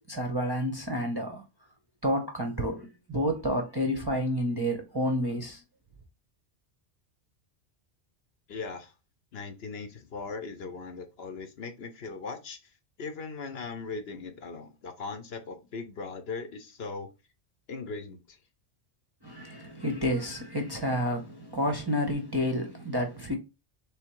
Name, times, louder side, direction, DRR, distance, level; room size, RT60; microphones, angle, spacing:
voice 1, 0.1-1.4 2.0-5.6 19.2-23.3, equal, 25° right, 0.6 m, -30 dB
voice 2, 8.5-8.9 9.3-12.6 13.0-17.1 17.7-18.4, left 4 dB, 60° left, 0.9 m, -39 dB
3.5 x 3.1 x 4.5 m
omnidirectional pair, 1.2 m